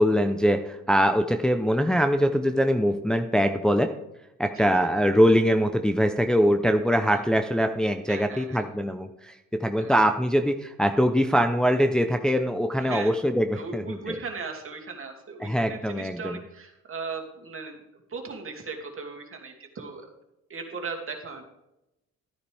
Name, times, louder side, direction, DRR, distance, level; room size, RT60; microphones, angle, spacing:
voice 1, 0.0-3.9 4.4-14.2 15.4-16.4, equal, ahead, 5 dB, 0.7 m, -23 dB
voice 2, 4.5-4.9 8.1-8.7 9.8-10.0 12.8-13.1 13.5-17.8 18.1-20.1 20.5-21.4, right 4 dB, 45° right, 2 dB, 2.6 m, -38 dB
13.0 x 9.7 x 3.5 m, 0.89 s
cardioid pair, 90°, 30 cm